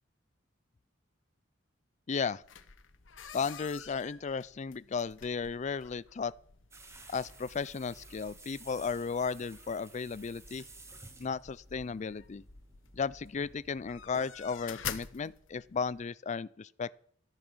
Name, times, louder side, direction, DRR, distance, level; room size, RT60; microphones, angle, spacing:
voice 1, 2.1-2.4 3.3-6.3 7.1-10.6 11.2-12.4 12.9-16.9, left 5 dB, 40° left, 0.4 m, -35 dB
sound 1, 2.4-16.0, left 8 dB, 90° left, 1.0 m, -49 dB
sound 2, 6.7-14.3, right 2 dB, 15° right, 1.5 m, -54 dB
14.0 x 8.9 x 6.2 m
head